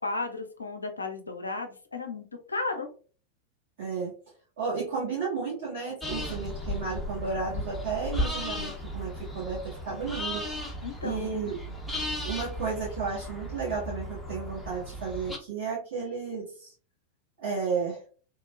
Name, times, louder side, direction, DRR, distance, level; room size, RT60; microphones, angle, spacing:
voice 1, 0.0-2.9 10.8-11.5, left 3 dB, 80° left, 5 dB, 0.5 m, -34 dB
voice 2, 3.8-4.1 4.6-10.4 11.0-11.6 12.2-16.7 17.4-18.0, right 5 dB, 55° right, -7 dB, 1.3 m, -33 dB
sound 1, 6.0-15.4, equal, 5° left, 0.6 m, -35 dB
3.1 x 2.1 x 2.3 m, 0.40 s
figure-of-eight pair, 90°, 0 cm